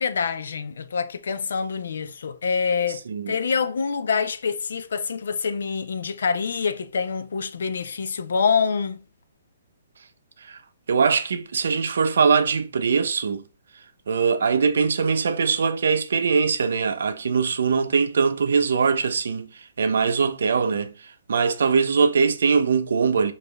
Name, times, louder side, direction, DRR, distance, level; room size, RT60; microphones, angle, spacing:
voice 1, 0.0-9.0, left 5 dB, 70° left, 0.5 m, -26 dB
voice 2, 10.9-13.4 14.1-23.3, right 5 dB, 70° right, 0.6 m, -22 dB
5.1 x 2.5 x 3.3 m
hypercardioid pair, 135°, 0 cm